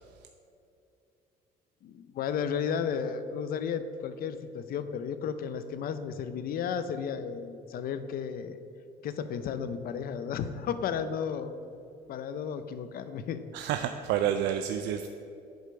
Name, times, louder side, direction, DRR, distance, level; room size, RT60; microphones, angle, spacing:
voice 1, 1.8-8.6 9.0-11.6 12.1-13.4, left 7 dB, 60° left, 11 dB, 0.6 m, -33 dB
voice 2, 13.5-15.1, right 10 dB, 85° right, 7 dB, 0.4 m, -29 dB
8.0 x 5.0 x 6.7 m, 2.6 s
cardioid pair, 110°, 17 cm